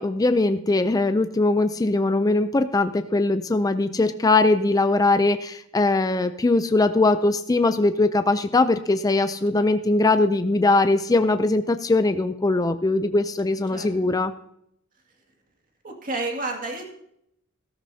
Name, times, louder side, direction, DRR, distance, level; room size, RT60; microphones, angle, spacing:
voice 1, 0.0-14.3, left 2 dB, 15° left, 10 dB, 0.4 m, -21 dB
voice 2, 15.8-16.9, right 2 dB, 40° right, 2 dB, 2.1 m, -30 dB
14.0 x 13.0 x 2.7 m, 0.75 s
head